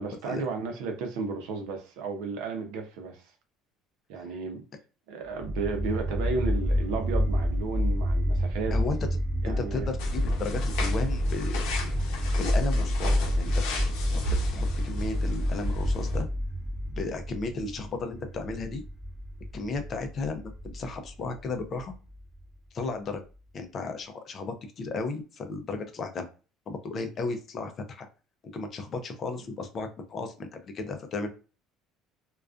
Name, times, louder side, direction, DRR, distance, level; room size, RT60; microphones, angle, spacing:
voice 1, 0.0-3.2 4.1-4.6 5.1-8.8 9.4-9.9, right 4 dB, 80° right, 0.6 m, -33 dB
sound 1, 5.4-22.4, equal, 5° right, 1.0 m, -29 dB
voice 2, 9.4-11.9 12.4-13.5 14.1-16.3 16.9-18.8 19.5-21.9 22.7-23.2 23.5-26.3 26.7-28.1 28.4-31.3, left 3 dB, 35° left, 0.4 m, -34 dB
sound 2, 10.0-16.2, left 1 dB, 80° left, 0.6 m, -36 dB
2.4 x 2.2 x 2.4 m
cardioid pair, 140°, 0 cm